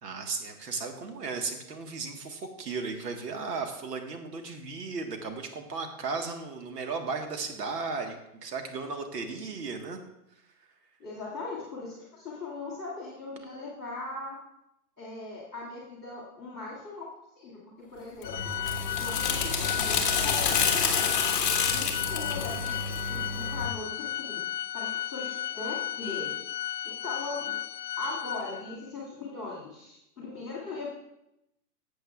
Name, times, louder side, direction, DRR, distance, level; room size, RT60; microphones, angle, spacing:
voice 1, 0.0-8.1 8.4-10.0, right 4 dB, 80° right, 5 dB, 1.6 m, -35 dB
voice 2, 11.0-14.4 15.0-17.6 17.9-18.5 19.0-20.8 21.6-22.6 23.1-24.4 24.7-26.4 26.8-27.6 28.0-30.9, left 3 dB, 5° right, -15 dB, 0.5 m, -39 dB
Organ, 18.2-28.9, left 12 dB, 85° left, 0.8 m, -34 dB
sound 1, 18.2-23.7, left 6 dB, 35° left, 1.4 m, -28 dB
13.5 x 7.9 x 2.4 m, 0.83 s
hypercardioid pair, 165°, 47 cm